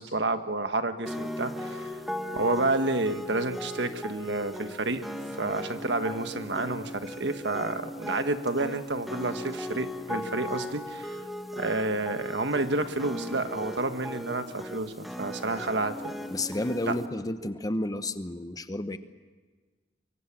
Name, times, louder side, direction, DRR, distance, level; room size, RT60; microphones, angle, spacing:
voice 1, 0.0-1.9 2.3-5.0 5.4-11.2 11.5-16.2 16.9-17.0, right 2 dB, 75° right, 9 dB, 1.4 m, -30 dB
sound 1, 1.1-17.1, equal, ahead, 1.6 m, -38 dB
voice 2, 16.3-19.0, left 1 dB, 20° left, 10 dB, 0.9 m, -31 dB
24.5 x 23.5 x 7.4 m, 1.4 s
head